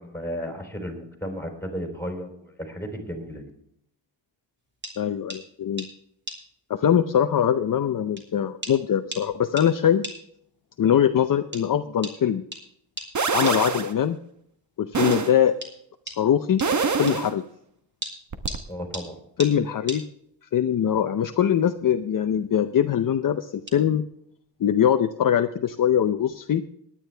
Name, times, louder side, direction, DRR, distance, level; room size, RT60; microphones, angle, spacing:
voice 1, 0.0-3.5 18.7-19.2, equal, 5° left, 4 dB, 3.7 m, -34 dB
processed reverb drum sticks, 4.8-5.0 5.3-5.4 5.8-5.9 6.3-6.4 7.4-7.5 8.2-8.3 8.6-8.8 9.1-9.3 9.6-9.7 10.0-10.2 11.5-11.7 12.0-12.2 12.5-12.6 13.0-13.1 13.5-13.6 15.1-15.2 15.6-15.7 16.1-16.2 16.6-16.7 17.1-17.2 18.0-18.6 18.9-19.1 19.4-19.6 19.9-20.0 21.7-21.9 22.2-22.5 23.7-23.8, right 1 dB, 25° right, 3.1 m, -36 dB
voice 2, 5.0-5.8 6.7-10.0 10.8-12.4 13.3-14.2 14.8-15.5 16.1-16.6 17.0-17.4 19.4-20.0 20.5-24.0 24.6-26.6, left 9 dB, 45° left, 7 dB, 0.7 m, -22 dB
sound 1, 13.1-13.9 14.9-15.3 16.6-17.3 18.3-18.6, right 5 dB, 40° right, 1.2 m, -24 dB
18.5 x 10.0 x 3.4 m, 0.72 s
wide cardioid pair, 120°, 44 cm